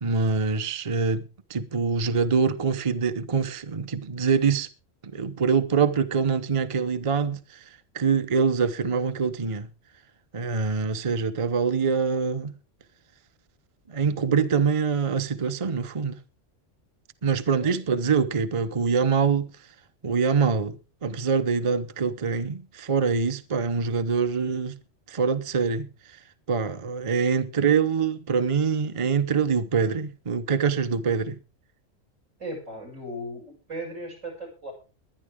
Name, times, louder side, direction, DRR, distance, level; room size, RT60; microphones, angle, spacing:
voice 1, 0.0-1.2 1.5-4.7 5.1-9.7 10.3-12.5 13.9-16.2 17.2-19.5 20.0-20.8 21.0-24.8 25.1-26.2 26.5-31.4, right 5 dB, 30° right, 0.8 m, -24 dB
voice 2, 17.6-18.2 32.4-34.7, right 1 dB, 75° right, 8.0 m, -37 dB
21.5 x 10.0 x 3.6 m
omnidirectional pair, 1.3 m